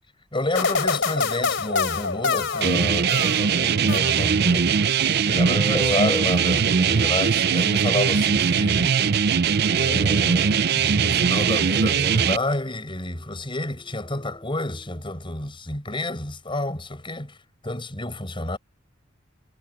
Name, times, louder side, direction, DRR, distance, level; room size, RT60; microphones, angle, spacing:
voice 1, 0.3-8.9 9.7-17.4 17.6-18.6, left 2 dB, 25° left, 4.9 m, -29 dB
sound 1, 0.5-3.5 3.9-4.5, left 5 dB, 65° left, 3.5 m, -26 dB
sound 2, 2.6-12.4, right 6 dB, 55° right, 0.5 m, -21 dB
sound 3, 4.2-4.5 5.3-10.6 11.0-15.0, equal, 5° left, 3.9 m, -40 dB
head